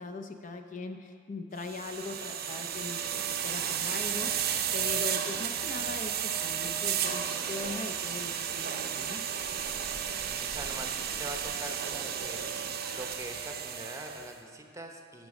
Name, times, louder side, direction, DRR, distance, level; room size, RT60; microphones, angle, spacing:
voice 1, 0.0-9.2, left 3 dB, 40° left, 6 dB, 0.5 m, -40 dB
sound 1, 1.6-14.3, right 8 dB, 50° right, 0.6 m, -33 dB
voice 2, 4.5-5.0 9.8-12.4 12.9-15.3, right 1 dB, 15° right, 3 dB, 0.7 m, -44 dB
11.5 x 5.0 x 7.1 m, 2.3 s
head